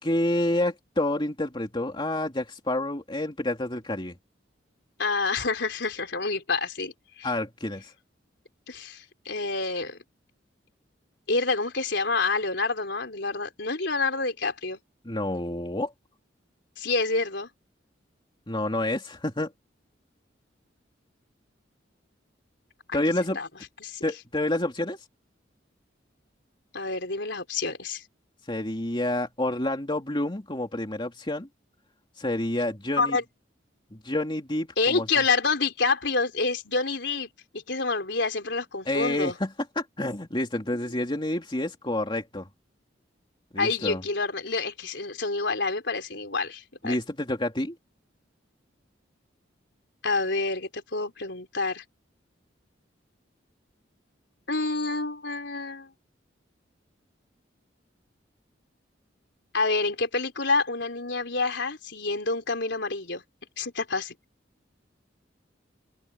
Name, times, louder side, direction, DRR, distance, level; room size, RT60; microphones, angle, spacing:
voice 1, 0.0-4.2 7.2-7.9 15.0-15.9 18.5-19.5 22.9-23.4 24.0-25.0 28.5-31.5 32.2-33.2 33.9-35.1 38.9-42.5 43.5-44.0 46.8-47.8, left 1 dB, 25° left, 2.8 m, -28 dB
voice 2, 5.0-7.3 8.7-10.0 11.3-14.8 16.8-17.5 22.9-23.0 23.3-23.5 23.8-24.0 26.7-28.0 33.0-33.2 34.8-39.3 43.6-47.0 50.0-51.8 54.5-55.9 59.5-63.2 63.6-64.1, left 3 dB, 65° left, 4.5 m, -28 dB
head